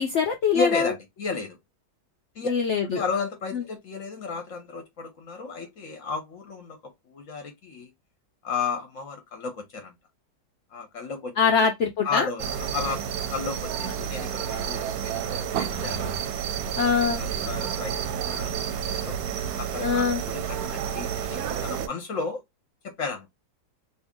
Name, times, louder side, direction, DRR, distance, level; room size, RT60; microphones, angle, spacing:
voice 1, 0.0-0.9 2.4-3.0 3.5-3.6 11.4-12.3 16.8-17.2 19.8-20.2, left 6 dB, 90° left, 0.6 m, -23 dB
voice 2, 0.5-1.6 2.3-2.5 2.9-7.9 8.4-9.9 10.7-11.6 12.0-16.2 17.0-19.2 19.6-22.4 22.8-23.3, left 4 dB, 60° left, 0.9 m, -33 dB
sound 1, 12.4-21.9, right 8 dB, 70° right, 0.9 m, -30 dB
2.7 x 2.7 x 3.5 m
omnidirectional pair, 1.9 m